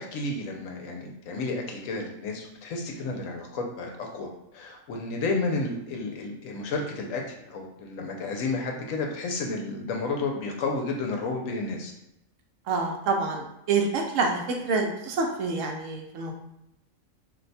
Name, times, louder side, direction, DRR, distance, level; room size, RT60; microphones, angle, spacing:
voice 1, 0.0-11.9, left 3 dB, 80° left, 2 dB, 1.0 m, -31 dB
voice 2, 12.7-16.3, right 4 dB, 75° right, 2 dB, 0.9 m, -27 dB
2.7 x 2.2 x 4.0 m, 0.84 s
omnidirectional pair, 1.4 m